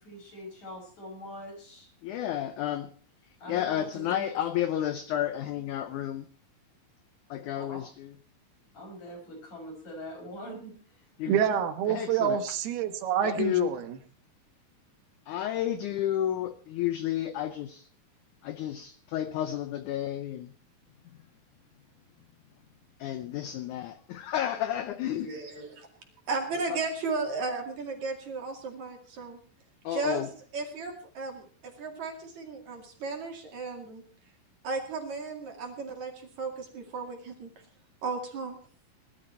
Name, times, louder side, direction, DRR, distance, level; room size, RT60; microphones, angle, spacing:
voice 1, 0.0-1.9 3.4-4.3 7.5-7.8 8.7-11.6 25.1-25.7 26.5-26.8, left 1 dB, 45° left, 6.8 m, -43 dB
voice 2, 2.0-2.9 3.5-6.3 7.3-8.1 11.2-11.4 11.9-12.4 13.2-13.7 15.3-17.9 18.4-20.5 23.0-25.3 29.8-30.3, left 11 dB, 80° left, 1.8 m, -31 dB
voice 3, 11.3-14.0, right 9 dB, 85° right, 3.2 m, -27 dB
voice 4, 26.3-29.4 29.9-30.3 30.5-34.0 34.6-37.5 38.0-38.6, right 4 dB, 50° right, 3.4 m, -35 dB
19.5 x 12.0 x 4.4 m
omnidirectional pair, 4.4 m